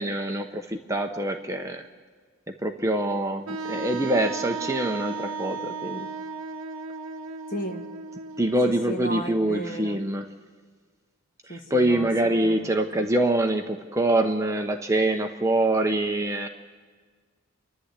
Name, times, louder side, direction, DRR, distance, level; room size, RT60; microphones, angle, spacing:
voice 1, 0.0-1.8 2.6-6.1 8.4-10.2 11.5-16.5, right 1 dB, 15° right, 4 dB, 0.8 m, -25 dB
Wind instrument woodwind instrument, 3.5-9.2, right 4 dB, 85° right, 0.8 m, -35 dB
voice 2, 7.5-7.8 8.6-10.0 11.5-12.8, right 1 dB, 40° left, 3 dB, 1.8 m, -34 dB
29.0 x 11.5 x 8.2 m, 1.5 s
head